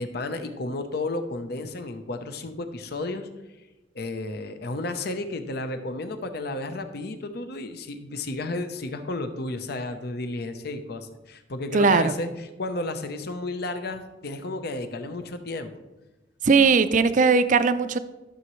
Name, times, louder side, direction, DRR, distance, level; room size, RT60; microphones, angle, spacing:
voice 1, 0.0-3.3 3.9-15.7, left 2 dB, 60° left, 8 dB, 0.8 m, -32 dB
voice 2, 11.7-12.1 16.4-18.0, right 4 dB, 45° right, 12 dB, 0.5 m, -19 dB
13.0 x 6.9 x 3.1 m, 1.1 s
head